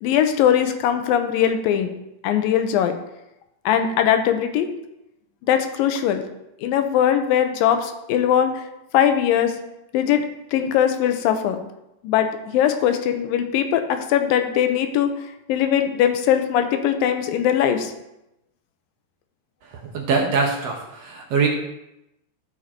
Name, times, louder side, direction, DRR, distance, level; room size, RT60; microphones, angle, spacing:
voice 1, 0.0-1.9 2.2-3.0 3.7-4.7 5.4-6.2 6.6-8.6 8.9-9.6 9.9-10.2 10.5-11.6 12.0-15.1 15.5-17.9, left 9 dB, 80° left, 7 dB, 2.5 m, -20 dB
voice 2, 19.7-21.5, right 4 dB, 70° right, 1 dB, 1.6 m, -23 dB
12.5 x 4.7 x 4.3 m, 0.88 s
omnidirectional pair, 4.1 m